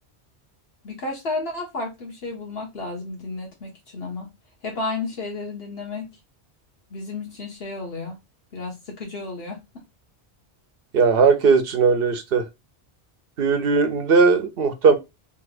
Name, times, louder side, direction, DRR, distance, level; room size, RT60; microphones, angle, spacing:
voice 1, 0.8-4.3 4.6-6.1 6.9-8.2 8.5-9.6, left 3 dB, 65° left, 1.1 m, -32 dB
voice 2, 10.9-12.4 13.4-14.9, right 4 dB, 65° right, 0.9 m, -18 dB
3.3 x 2.8 x 2.4 m
omnidirectional pair, 1.1 m